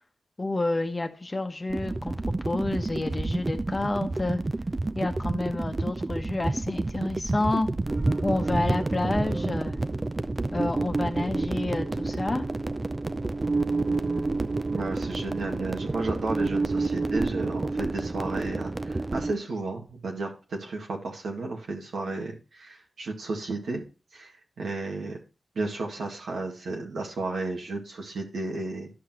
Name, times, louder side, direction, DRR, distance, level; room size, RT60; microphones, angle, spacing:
voice 1, 0.4-4.4 4.9-7.7 8.2-9.8 10.5-12.5, left 2 dB, 30° left, 6 dB, 1.1 m, -29 dB
sound 1, 1.7-19.3, right 2 dB, 30° right, 0.5 m, -29 dB
voice 2, 14.7-23.8 24.1-25.2 25.6-28.9, right 3 dB, 90° right, 1 dB, 1.9 m, -33 dB
11.5 x 5.9 x 2.9 m, 0.33 s
cardioid pair, 65°, 0 cm